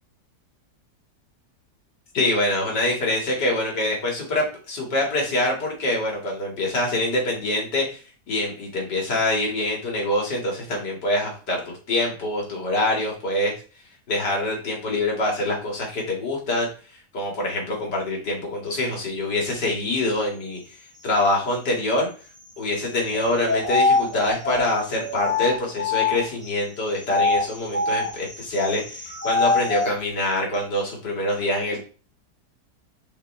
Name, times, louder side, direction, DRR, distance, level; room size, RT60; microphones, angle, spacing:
voice 1, 2.1-11.6 11.9-13.5 14.1-20.6 21.0-22.1 22.6-31.8, left 1 dB, 80° left, -1 dB, 2.9 m, -25 dB
sound 1, 23.1-26.5 27.0-29.9, left 3 dB, 10° left, 0.8 m, -24 dB
6.9 x 5.0 x 3.4 m, 0.37 s
omnidirectional pair, 1.8 m